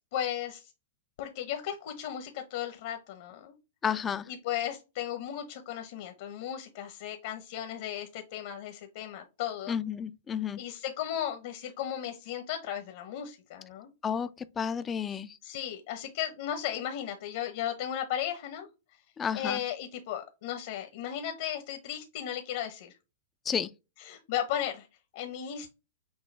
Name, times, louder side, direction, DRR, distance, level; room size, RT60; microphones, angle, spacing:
voice 1, 0.1-0.7 1.2-3.5 4.3-9.8 10.6-13.9 15.4-18.7 19.3-22.9 24.0-24.9 25.1-25.7, left 10 dB, 60° left, 1.0 m, -35 dB
voice 2, 3.8-4.3 9.7-10.6 14.0-15.4 19.2-19.6 23.5-23.7, left 7 dB, 20° left, 0.4 m, -31 dB
6.3 x 2.3 x 3.3 m
hypercardioid pair, 135°, 0 cm